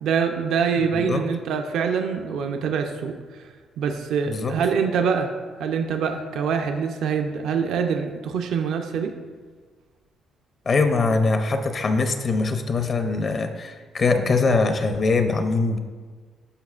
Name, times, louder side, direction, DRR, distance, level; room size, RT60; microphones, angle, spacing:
voice 1, 0.0-3.5 3.8-9.2, right 6 dB, 80° right, 5 dB, 0.5 m, -25 dB
voice 2, 0.7-1.2 4.3-4.5 10.7-15.8, left 3 dB, 45° left, 7 dB, 0.6 m, -22 dB
12.0 x 4.9 x 2.4 m, 1.5 s
cardioid pair, 95°, 0 cm